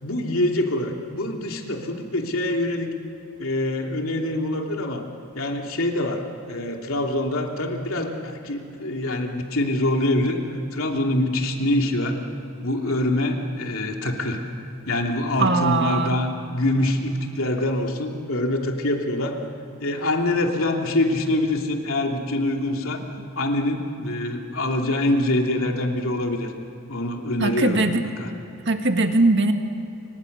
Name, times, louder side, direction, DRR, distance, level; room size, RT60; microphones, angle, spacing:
voice 1, 0.0-2.9 3.4-5.0 5.3-10.4 10.7-12.2 12.6-14.4 14.9-19.4 19.8-23.1 23.3-26.5 26.9-28.3, left 1 dB, 70° left, 2 dB, 3.0 m, -25 dB
voice 2, 15.4-16.2 27.4-28.0 28.7-29.5, right 2 dB, 55° right, 5 dB, 2.0 m, -20 dB
28.5 x 25.5 x 6.8 m, 2.9 s
head